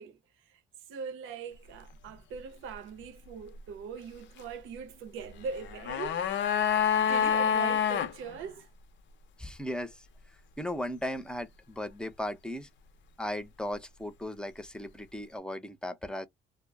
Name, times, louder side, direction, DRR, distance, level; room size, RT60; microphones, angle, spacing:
voice 1, 0.0-6.2 7.0-8.7, right 6 dB, 85° right, 0.7 m, -41 dB
sound 1, 5.5-8.1 8.4-8.5, left 8 dB, 70° left, 0.6 m, -27 dB
voice 2, 9.4-10.1 10.6-12.7 13.2-16.3, left 1 dB, 5° left, 0.6 m, -36 dB
2.2 x 2.0 x 3.3 m
cardioid pair, 90°, 20 cm